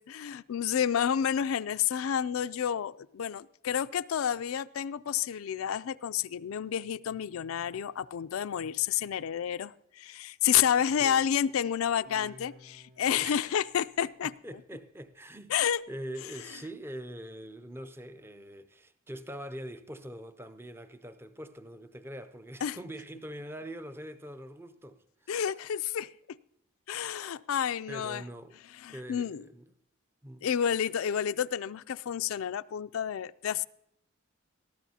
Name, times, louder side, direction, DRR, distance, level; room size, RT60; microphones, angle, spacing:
voice 1, 0.0-14.6 15.5-15.8 16.4-16.6 22.6-22.8 25.3-26.1 26.9-28.2 28.7-29.4 30.4-33.6, left 9 dB, 85° left, 0.4 m, -30 dB
voice 2, 10.8-11.2 13.1-13.5 14.2-15.6 15.9-25.3 27.9-28.6 28.9-29.7 30.2-30.5, right 1 dB, 10° right, 0.5 m, -43 dB
Guitar, 12.0-15.3, left 1 dB, 65° right, 3.3 m, -56 dB
19.5 x 13.5 x 2.8 m
head